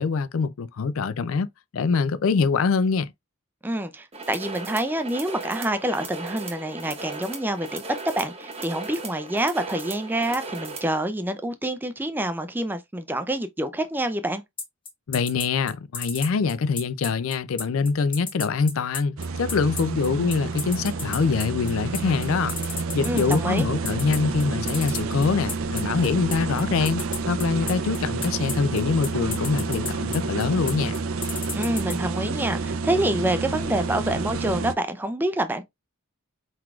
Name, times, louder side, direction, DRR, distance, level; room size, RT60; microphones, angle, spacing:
voice 1, 0.0-1.5 1.7-3.1 15.1-22.6 22.9-31.0, left 5 dB, 70° left, 0.4 m, -24 dB
voice 2, 3.6-7.8 8.2-14.4 23.0-23.7 31.5-35.6, right 1 dB, 10° right, 0.4 m, -27 dB
sound 1, 4.1-11.0, right 4 dB, 25° right, 1.0 m, -37 dB
sound 2, 14.6-31.9, left 4 dB, 25° left, 1.1 m, -32 dB
sound 3, 19.2-34.7, right 4 dB, 70° right, 0.5 m, -29 dB
4.5 x 4.0 x 2.4 m
head